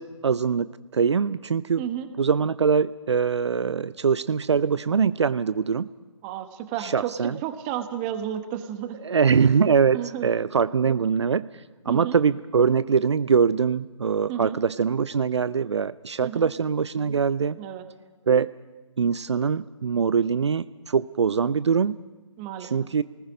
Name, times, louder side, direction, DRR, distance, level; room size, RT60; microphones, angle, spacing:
voice 1, 0.0-1.8 2.2-5.9 6.8-7.4 9.0-11.5 11.9-17.6 18.3-18.5 19.0-22.0 22.6-23.0, right 6 dB, 60° right, 16 dB, 0.6 m, -23 dB
voice 2, 1.8-2.1 6.2-9.0 9.9-10.3 11.9-12.2 14.3-14.6 16.2-16.5 17.6-17.8 22.4-22.7, right 10 dB, 20° right, 9 dB, 1.3 m, -32 dB
29.0 x 20.0 x 5.1 m, 1.2 s
figure-of-eight pair, 145°, 16 cm